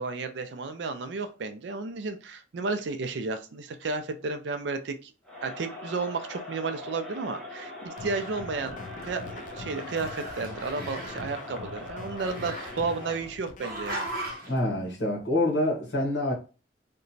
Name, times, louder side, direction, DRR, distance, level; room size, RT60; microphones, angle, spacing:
voice 1, 0.0-5.1 5.4-8.8 9.0-14.1, right 4 dB, 70° right, 0.4 m, -33 dB
Crowd, 5.2-13.4, left 1 dB, 5° left, 0.8 m, -41 dB
sound 1, 8.0-14.4, left 4 dB, 45° left, 0.4 m, -43 dB
Growling, 8.4-9.6 9.9-11.3 12.2-13.2 13.6-14.6, right 1 dB, 55° right, 0.8 m, -38 dB
voice 2, 14.5-16.3, left 1 dB, 65° left, 1.0 m, -26 dB
2.9 x 2.2 x 2.6 m
head